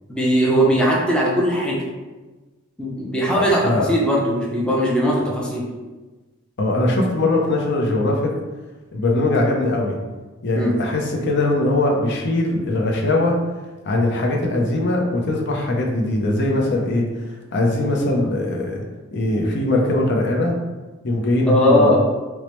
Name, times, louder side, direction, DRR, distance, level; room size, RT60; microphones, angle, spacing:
voice 1, 0.1-1.8 2.8-5.6 10.5-10.7 21.5-22.0, equal, 5° left, -4 dB, 0.5 m, -19 dB
voice 2, 3.3-3.9 6.6-8.3 8.9-10.0 10.4-13.3 13.8-17.0 17.5-18.8 19.1-20.6 21.0-21.9, left 2 dB, 55° left, -1 dB, 0.6 m, -20 dB
4.5 x 2.0 x 3.0 m, 1.2 s
head